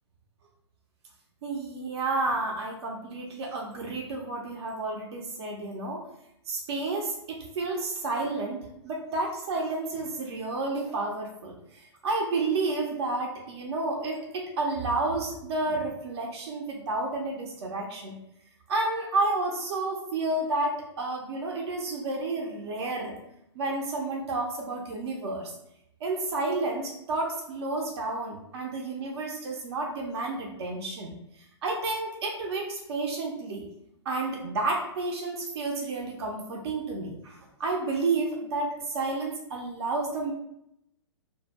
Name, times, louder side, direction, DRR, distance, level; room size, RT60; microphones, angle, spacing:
voice 1, 1.4-6.0 6.5-18.1 18.7-23.2 23.5-25.5 26.0-33.7 34.0-40.3, right 2 dB, 60° right, 0 dB, 0.6 m, -31 dB
2.1 x 2.1 x 3.3 m, 0.78 s
hypercardioid pair, 125°, 15 cm